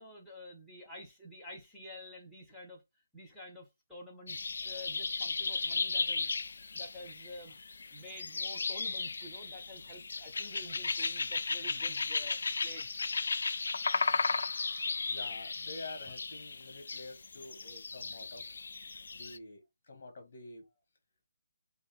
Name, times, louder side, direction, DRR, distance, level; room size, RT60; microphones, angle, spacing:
voice 1, 0.0-2.8 3.1-6.3 6.7-7.6 7.9-13.0, left 1 dB, ahead, 0.7 m, -49 dB
sound 1, 4.3-19.4, left 4 dB, 55° left, 0.4 m, -35 dB
voice 2, 15.1-18.7 19.1-20.7, left 2 dB, 35° left, 1.7 m, -48 dB
6.6 x 2.3 x 3.4 m
hypercardioid pair, 175°, 0 cm